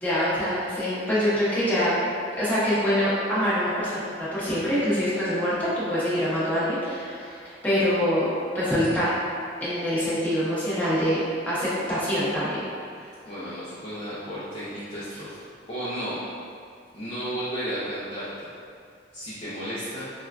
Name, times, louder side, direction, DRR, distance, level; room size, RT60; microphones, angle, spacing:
voice 1, 0.0-2.0 2.4-7.4 7.6-8.3 8.5-9.1 9.6-12.6, equal, 10° left, -11 dB, 0.9 m, -25 dB
voice 2, 12.9-15.4 15.7-16.2 16.9-18.3 19.1-20.1, equal, 30° left, -12 dB, 0.5 m, -33 dB
4.3 x 2.3 x 2.4 m, 2.2 s
head